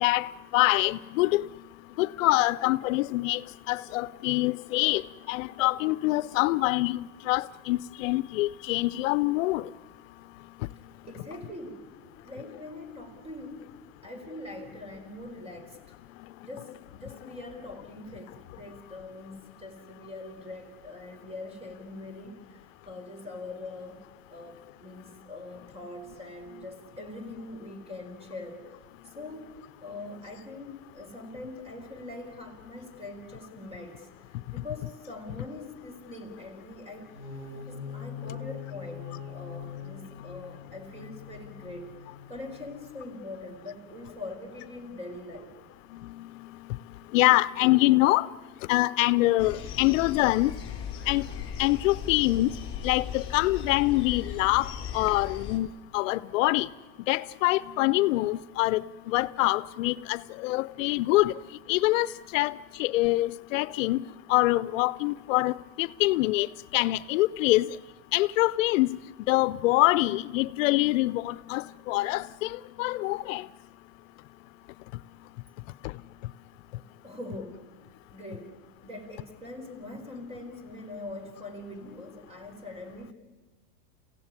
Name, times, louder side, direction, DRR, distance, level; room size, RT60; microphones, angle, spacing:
voice 1, 0.0-1.4 2.0-3.4 3.7-5.0 5.3-9.6 47.1-48.3 48.7-50.5 51.1-51.2 51.6-52.5 52.8-54.7 54.9-55.7 55.9-56.7 57.1-61.3 61.7-62.1 62.3-62.5 62.8-64.0 64.3-66.5 66.7-67.7 68.1-69.0 69.3-73.4, left 19 dB, 75° left, 0.7 m, -25 dB
voice 2, 11.1-11.9 12.2-13.7 14.0-15.9 16.4-24.0 24.3-28.8 29.0-29.5 29.8-37.1 37.7-45.5 76.7-77.6 78.1-78.6 78.8-83.1, left 2 dB, 15° right, 4.8 m, -43 dB
sound 1, 37.0-42.9, left 7 dB, 30° right, 7.5 m, -42 dB
sound 2, 49.4-55.6, left 7 dB, 35° left, 4.3 m, -38 dB
30.0 x 16.0 x 9.8 m
supercardioid pair, 145°, 39 cm